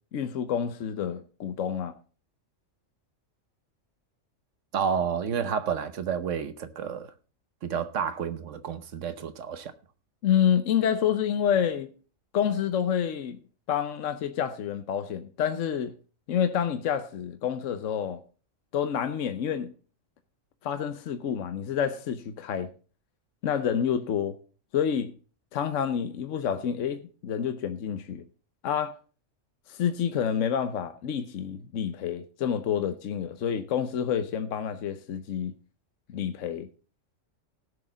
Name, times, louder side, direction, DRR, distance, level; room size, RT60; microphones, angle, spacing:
voice 1, 0.1-1.9 10.2-11.9 12.3-13.4 13.7-15.9 16.3-18.2 18.7-19.7 20.6-22.7 23.4-24.3 24.7-25.1 25.5-28.2 28.6-29.0 29.7-35.5 36.1-36.7, left 8 dB, 70° left, 1.1 m, -28 dB
voice 2, 4.7-7.1 7.6-9.7, right 7 dB, 70° right, 1.2 m, -30 dB
17.0 x 6.4 x 3.9 m
omnidirectional pair, 1.3 m